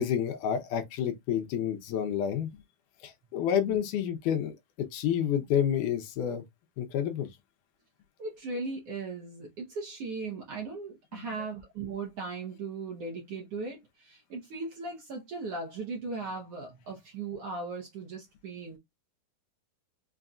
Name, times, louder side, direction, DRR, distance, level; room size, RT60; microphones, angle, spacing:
voice 1, 0.0-2.5 3.0-4.5 4.9-6.4 6.8-7.3 11.1-11.3, left 9 dB, 80° left, 2.2 m, -29 dB
voice 2, 8.2-18.8, right 3 dB, 70° right, 1.5 m, -38 dB
5.6 x 2.6 x 2.3 m
omnidirectional pair, 3.7 m